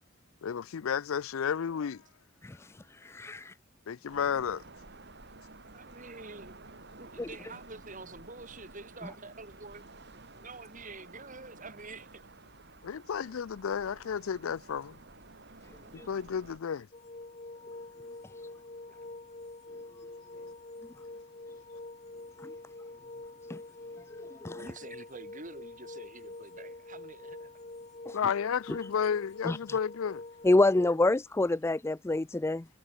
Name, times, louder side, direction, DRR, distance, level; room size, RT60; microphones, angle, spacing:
voice 1, 0.4-2.0 3.9-4.6 12.8-15.0 16.1-16.9 28.1-30.2, left 7 dB, 75° left, 0.4 m, -32 dB
voice 2, 3.0-3.5 7.2-7.3 16.0-16.1 22.4-22.5 23.5-23.6 24.2-24.6 28.1-28.2 29.4-29.8 30.4-32.6, left 2 dB, 10° left, 0.3 m, -27 dB
sound 1, 4.1-16.6, right 3 dB, 55° right, 4.2 m, -52 dB
voice 3, 5.7-6.7 7.0-12.2 13.2-13.3 18.9-19.2 24.6-27.5, right 3 dB, 40° right, 6.2 m, -47 dB
sound 2, 16.9-31.1, left 2 dB, 35° left, 1.4 m, -46 dB
head